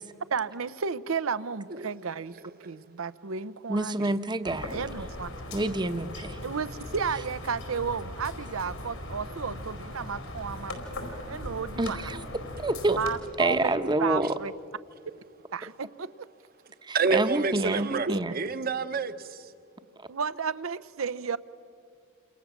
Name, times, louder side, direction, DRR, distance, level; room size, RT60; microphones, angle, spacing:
voice 1, 0.3-2.4 2.6-4.2 4.7-5.3 6.4-10.8 11.3-12.1 13.0-14.5 15.5-16.3 18.1-18.2 20.1-21.4, right 5 dB, 75° right, 0.7 m, -33 dB
voice 2, 3.7-4.8 5.5-6.4 11.8-12.2 12.6-13.0 13.4-14.3 16.8-18.3, right 2 dB, 20° right, 0.9 m, -27 dB
sound 1, 4.4-13.2, left 1 dB, 85° left, 4.6 m, -39 dB
voice 3, 16.9-19.5, right 4 dB, 45° right, 1.0 m, -28 dB
29.0 x 27.0 x 7.2 m
head